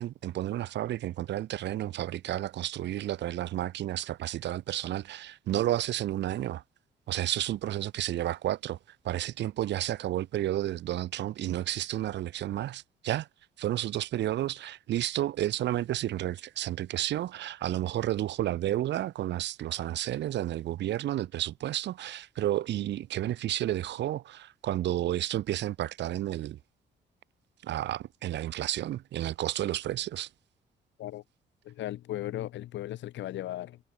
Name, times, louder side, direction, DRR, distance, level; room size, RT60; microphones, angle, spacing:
voice 1, 0.0-6.6 7.1-8.8 9.0-13.3 13.6-26.6 27.6-30.3, right 13 dB, 70° right, 2.6 m, -31 dB
voice 2, 31.6-33.8, left 14 dB, 85° left, 4.5 m, -36 dB
cardioid pair, 170°, 19 cm